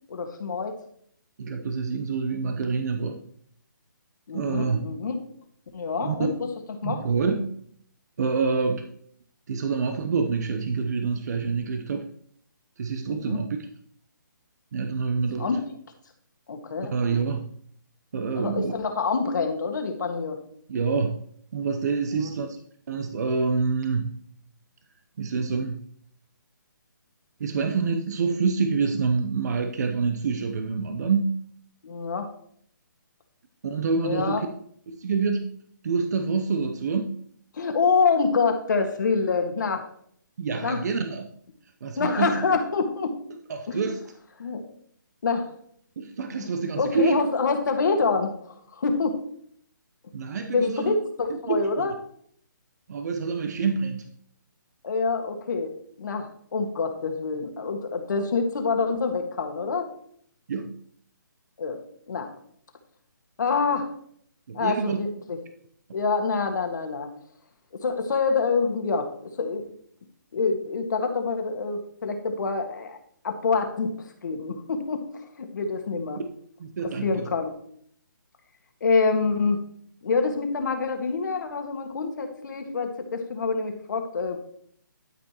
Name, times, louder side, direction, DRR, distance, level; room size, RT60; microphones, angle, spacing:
voice 1, 0.1-0.8 4.3-5.2 5.7-6.5 6.8-7.0 13.1-13.4 15.4-15.6 16.5-16.9 18.3-20.4 22.1-22.3 31.8-32.3 34.0-34.4 37.5-39.9 40.6-40.8 42.0-43.2 43.7-43.8 44.4-44.6 45.2-45.5 46.8-49.2 50.5-51.9 54.8-59.9 61.6-61.8 62.1-62.3 63.4-63.9 64.5-65.4 65.9-67.1 67.7-69.1 69.4-69.6 70.3-73.0 73.2-76.2 77.0-77.5 78.8-79.6 80.0-84.4, left 4 dB, 60° left, 5 dB, 1.8 m, -26 dB
voice 2, 1.4-3.2 4.3-4.8 6.0-6.1 6.8-7.5 8.2-8.9 9.5-12.1 12.8-13.5 14.7-15.5 16.9-17.5 18.1-18.7 20.7-21.2 21.5-22.6 22.9-24.1 25.2-25.8 27.4-31.4 33.6-34.5 34.9-35.6 35.8-37.2 40.4-41.3 41.8-42.3 43.5-44.0 46.0-47.2 50.1-50.9 51.3-51.9 52.9-54.1 60.5-60.8 64.5-65.0 76.6-77.3, right 5 dB, 55° right, 7 dB, 0.9 m, -27 dB
12.5 x 5.2 x 3.0 m, 0.63 s
hypercardioid pair, 150°, 11 cm